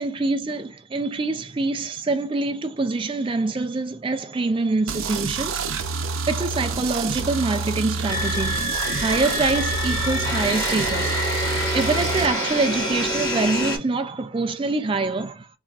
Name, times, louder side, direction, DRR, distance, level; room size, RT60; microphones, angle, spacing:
voice 1, 0.0-5.8 6.3-8.7 9.0-11.2 11.7-15.5, right 3 dB, 25° right, 0.4 m, -25 dB
sound 1, 4.9-12.3, right 4 dB, 80° right, 0.6 m, -28 dB
sound 2, 8.1-13.8, left 1 dB, 20° left, 1.4 m, -26 dB
4.0 x 3.6 x 2.4 m
head